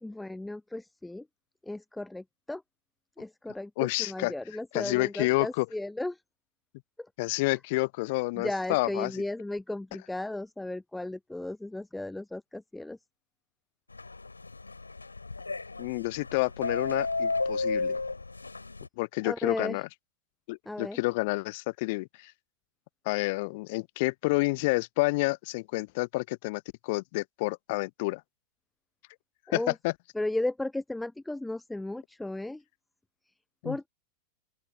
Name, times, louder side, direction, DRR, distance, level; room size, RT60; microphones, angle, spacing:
voice 1, 0.0-1.3 1.6-2.6 3.2-6.2 7.0-7.1 7.5-7.6 8.3-13.0 19.2-19.8 20.7-21.0 29.5-29.7 30.1-32.6 33.6-33.9, left 2 dB, 5° left, 0.6 m, -35 dB
voice 2, 3.8-4.3 4.7-5.7 7.2-9.1 15.8-18.0 19.0-19.9 20.5-22.3 23.1-28.2 29.5-29.9 33.6-33.8, left 24 dB, 50° left, 0.7 m, -29 dB
sound 1, 13.9-18.9, left 3 dB, 80° left, 3.7 m, -33 dB
open air
figure-of-eight pair, 90°, 0 cm